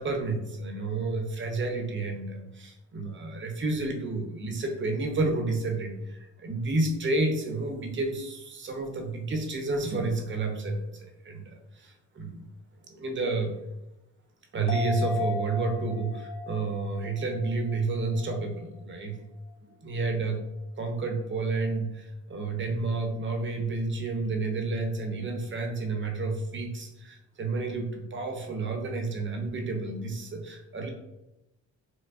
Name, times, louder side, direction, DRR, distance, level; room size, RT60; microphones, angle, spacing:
voice 1, 0.0-12.5 12.9-13.6 14.5-19.2 19.8-20.4 20.8-30.9, right 3 dB, 40° right, 3 dB, 0.7 m, -30 dB
sound 1, 14.7-18.4 18.7-18.8, left 4 dB, 80° left, 0.8 m, -36 dB
4.6 x 2.0 x 2.4 m, 0.96 s
cardioid pair, 90°, 30 cm